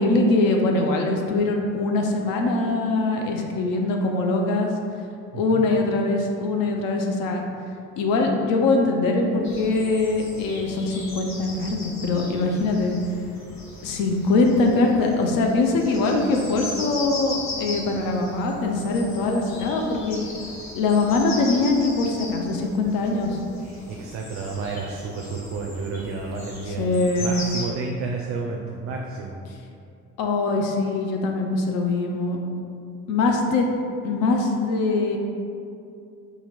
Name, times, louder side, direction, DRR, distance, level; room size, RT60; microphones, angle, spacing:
voice 1, 0.0-4.7 5.3-7.4 8.0-13.0 13.8-20.2 20.7-23.4 26.7-27.3 30.2-32.4 33.1-33.7 34.0-35.2, left 3 dB, 60° left, 2 dB, 0.5 m, -22 dB
voice 2, 5.3-5.6 23.6-26.8 27.2-29.4, right 4 dB, 35° right, 0 dB, 0.4 m, -31 dB
sound 1, 9.4-27.6, left 2 dB, 45° left, 1.0 m, -38 dB
2.9 x 2.7 x 3.8 m, 2.5 s
hypercardioid pair, 50°, 39 cm